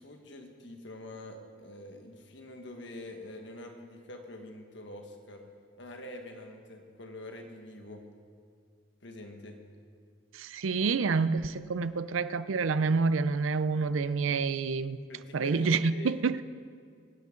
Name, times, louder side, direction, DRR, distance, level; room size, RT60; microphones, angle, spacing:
voice 1, 0.0-5.5 5.8-8.0 9.0-9.6 15.1-16.4, left 1 dB, 65° left, 4 dB, 1.5 m, -45 dB
voice 2, 10.3-15.0 15.3-16.4, right 4 dB, 90° right, 14 dB, 0.5 m, -28 dB
24.5 x 9.3 x 3.8 m, 2.2 s
head